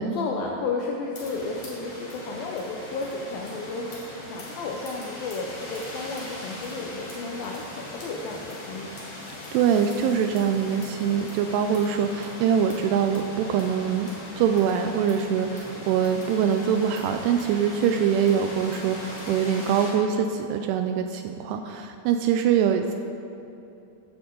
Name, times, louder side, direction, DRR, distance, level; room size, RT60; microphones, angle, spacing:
voice 1, 0.0-9.0, left 3 dB, 80° left, 0 dB, 2.1 m, -33 dB
sound 1, 1.1-19.9, left 1 dB, 45° left, 3.8 m, -40 dB
voice 2, 9.5-14.1 14.4-22.9, right 8 dB, 85° right, 6 dB, 2.4 m, -23 dB
15.0 x 9.6 x 3.8 m, 2.8 s
omnidirectional pair, 5.1 m